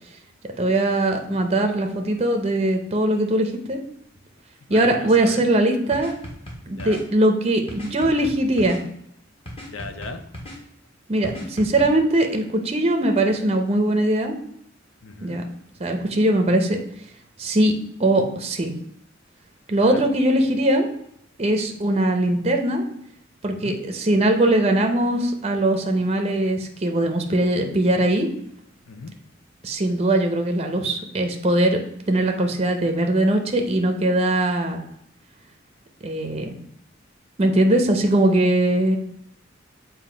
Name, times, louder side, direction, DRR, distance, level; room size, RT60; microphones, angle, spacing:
voice 1, 0.6-3.8 4.7-6.1 6.7-8.8 11.1-14.4 15.2-15.4 15.8-16.8 17.4-17.7 18.0-18.7 19.7-20.9 21.4-22.8 23.4-28.3 29.6-31.8 32.1-34.8 36.0-36.6 37.4-39.0, right 1 dB, 30° right, 4 dB, 0.6 m, -21 dB
voice 2, 4.7-5.4 6.7-7.0 9.7-10.2 15.0-15.4 19.7-20.1 23.6-23.8 28.9-29.1, left 3 dB, 85° left, 7 dB, 0.7 m, -36 dB
sound 1, 5.9-7.0 7.7-8.8 9.5-10.6 11.2-11.9, equal, 30° left, 1.4 m, -36 dB
7.5 x 2.7 x 5.0 m, 0.73 s
head